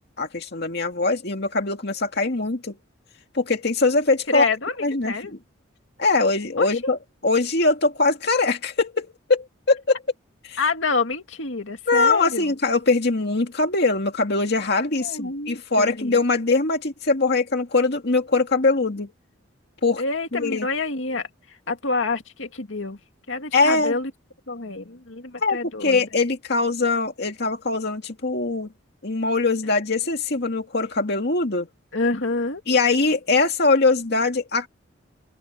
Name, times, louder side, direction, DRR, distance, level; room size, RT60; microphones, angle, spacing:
voice 1, 0.2-2.7 3.3-4.5 4.8-5.4 6.0-10.0 10.4-10.6 11.9-19.1 19.8-20.0 20.3-20.7 23.5-23.9 25.4-28.7 29.0-31.7 32.7-34.7, left 3 dB, 55° left, 2.1 m, -22 dB
voice 2, 4.3-5.3 6.6-6.9 10.6-12.5 15.0-16.1 20.0-21.3 21.7-23.0 23.3-24.1 24.5-26.0 31.9-32.6, left 3 dB, 75° left, 2.4 m, -27 dB
open air
head